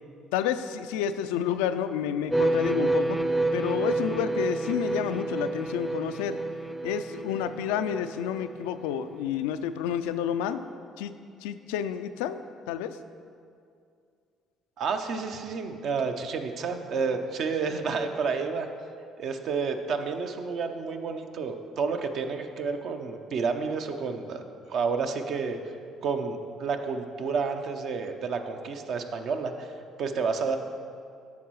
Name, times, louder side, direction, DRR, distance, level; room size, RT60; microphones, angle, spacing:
voice 1, 0.3-3.2 3.5-6.4 6.8-10.6 11.0-12.4 12.7-13.0, left 9 dB, 90° left, 11 dB, 0.3 m, -30 dB
sound 1, 2.3-9.0, right 2 dB, 5° right, 0.5 m, -29 dB
voice 2, 14.8-18.7 19.2-24.4 24.7-25.6 26.0-29.7 30.0-30.6, right 5 dB, 65° right, 6 dB, 0.7 m, -30 dB
8.3 x 6.1 x 4.7 m, 2.3 s
supercardioid pair, 70°, 0 cm